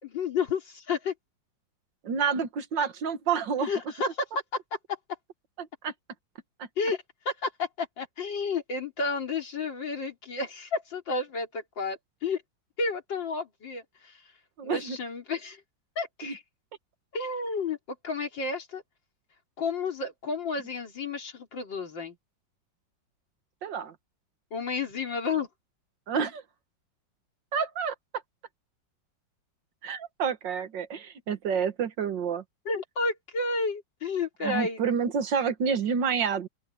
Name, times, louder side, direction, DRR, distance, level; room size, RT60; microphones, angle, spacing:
voice 1, 0.0-1.1 3.6-4.3 4.7-5.0 6.8-12.4 12.8-14.2 14.6-15.6 16.0-16.4 17.1-18.8 19.6-22.2 24.5-25.5 32.7-34.8, left 4 dB, 80° left, 3.9 m, -31 dB
voice 2, 2.0-3.7 5.6-5.9 14.6-15.0 16.2-16.3 23.6-23.9 26.1-26.4 27.5-27.9 29.8-32.4 34.4-36.5, right 6 dB, 75° right, 2.1 m, -29 dB
open air
omnidirectional pair, 2.0 m